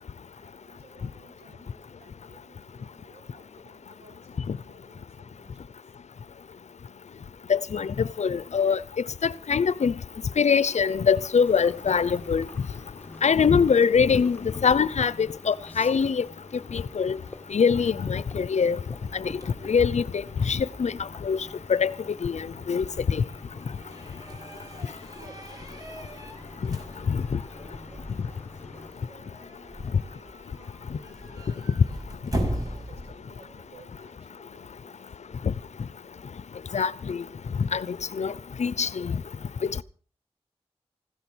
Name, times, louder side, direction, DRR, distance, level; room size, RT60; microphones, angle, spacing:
voice 1, 0.4-5.9 25.1-26.6 27.1-31.7 32.3-35.0, right 3 dB, 85° right, 5.8 m, -56 dB
voice 2, 7.5-8.8 9.2-9.9 10.4-12.4 13.2-16.2 16.7-17.2 17.5-18.8 19.1-19.2 19.7-20.0 20.5-20.9 21.2-21.4 21.7-21.9 22.2-23.2 27.1-27.4 35.4-35.5 36.7-37.2 37.7-37.9 38.2-38.3 38.6-39.2, left 6 dB, 85° left, 0.7 m, -23 dB
sound 1, 11.4-28.9, left 1 dB, 15° left, 2.2 m, -47 dB
sound 2, 18.6-33.7, right 1 dB, 35° right, 5.8 m, -40 dB
16.0 x 13.0 x 6.3 m
wide cardioid pair, 55°, 11 cm